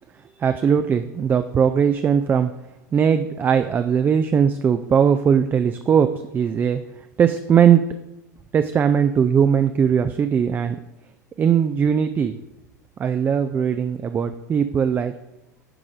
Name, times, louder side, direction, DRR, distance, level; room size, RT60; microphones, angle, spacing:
voice 1, 0.4-2.5 2.9-6.1 6.3-6.8 7.2-7.8 8.5-10.8 11.4-12.4 13.0-15.1, right 7 dB, 20° right, 9 dB, 0.3 m, -19 dB
9.5 x 4.8 x 3.8 m, 0.95 s
figure-of-eight pair, 85°, 10 cm